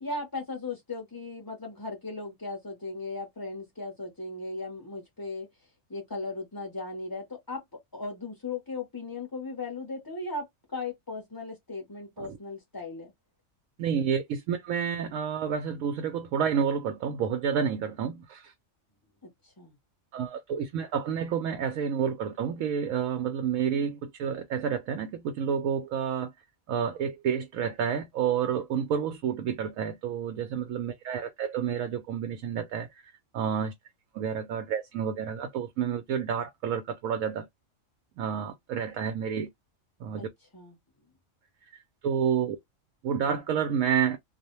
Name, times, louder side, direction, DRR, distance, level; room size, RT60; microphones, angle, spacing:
voice 1, 0.0-5.5 5.9-7.6 7.9-10.5 10.7-13.1 19.2-19.8 40.2-40.3 40.5-40.8, left 3 dB, 20° left, 0.6 m, -37 dB
voice 2, 13.8-18.5 20.1-26.3 26.7-32.9 33.3-33.7 34.1-37.5 38.2-39.5 40.0-40.3 42.0-42.6 43.0-44.2, right 7 dB, 80° right, 1.0 m, -29 dB
2.4 x 2.1 x 2.9 m
omnidirectional pair, 1.4 m